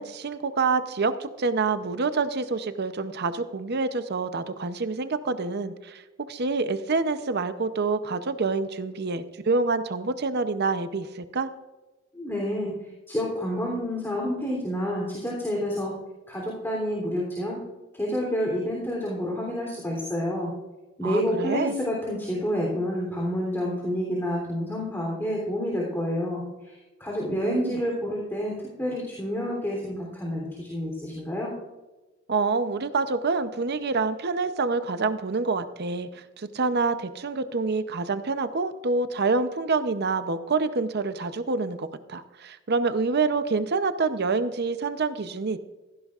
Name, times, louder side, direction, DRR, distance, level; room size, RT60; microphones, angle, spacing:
voice 1, 0.0-6.0 6.3-11.5 21.0-21.7 27.3-27.8 32.3-45.6, right 4 dB, 55° right, 11 dB, 0.7 m, -27 dB
voice 2, 12.1-12.8 13.1-16.0 16.3-17.6 17.9-20.5 21.0-31.5, equal, 10° left, -3 dB, 3.3 m, -29 dB
16.5 x 15.0 x 2.5 m, 1.1 s
head